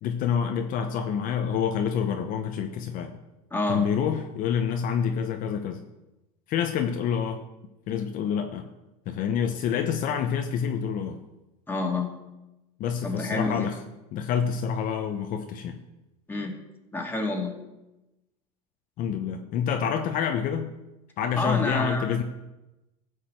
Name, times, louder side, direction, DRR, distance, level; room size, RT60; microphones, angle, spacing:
voice 1, 0.0-3.2 3.7-5.8 6.5-7.4 7.9-8.7 9.1-11.2 12.8-13.8 14.1-15.8 19.0-20.7 21.2-22.2, left 7 dB, 50° left, 5 dB, 0.9 m, -27 dB
voice 2, 3.5-3.8 11.7-12.1 13.0-13.7 16.3-16.5 16.9-17.5 21.4-22.2, left 2 dB, 10° left, 2 dB, 2.3 m, -28 dB
14.5 x 5.0 x 7.6 m, 0.98 s
supercardioid pair, 110°, 17 cm